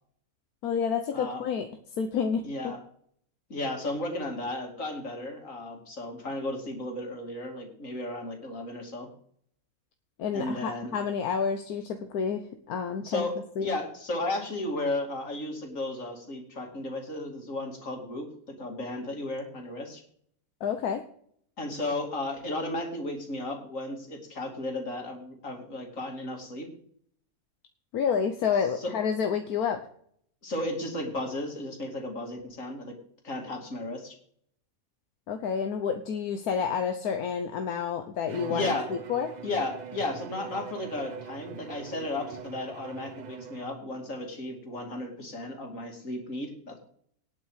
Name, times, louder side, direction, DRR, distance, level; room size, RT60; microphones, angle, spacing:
voice 1, 0.6-1.7 2.0-2.4 10.2-13.3 13.6-13.7 20.6-21.0 27.9-29.8 35.3-39.3, left 6 dB, 80° left, 7 dB, 1.4 m, -29 dB
voice 2, 2.4-2.8 3.5-9.1 10.3-10.9 13.0-13.4 13.6-20.0 21.6-26.7 28.8-28.9 30.4-32.9 33.2-34.2 38.5-38.9 39.4-46.8, left 2 dB, 60° left, 2 dB, 3.1 m, -34 dB
Bowed string instrument, 38.3-43.9, right 7 dB, 50° right, 0.5 m, -42 dB
18.5 x 6.2 x 4.9 m, 0.64 s
omnidirectional pair, 1.6 m